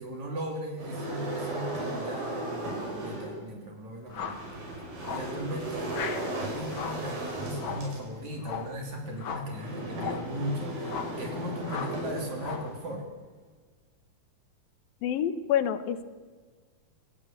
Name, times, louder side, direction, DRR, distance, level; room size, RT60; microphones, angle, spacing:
voice 1, 0.0-4.5 5.1-13.1, equal, 55° right, 1 dB, 4.2 m, -37 dB
sound 1, 0.8-3.4 4.1-12.9, right 1 dB, 85° right, 7.8 m, -36 dB
sound 2, 4.1-4.5 5.0-5.4 5.9-6.3 6.7-7.1 7.6-7.9 8.4-8.8 9.2-9.5 9.9-10.3 10.8-11.2 11.7-12.0 12.4-12.8, left 6 dB, 50° left, 1.6 m, -37 dB
voice 2, 15.0-16.0, left 9 dB, 80° left, 11 dB, 3.0 m, -27 dB
26.0 x 17.0 x 9.1 m, 1.5 s
omnidirectional pair, 4.1 m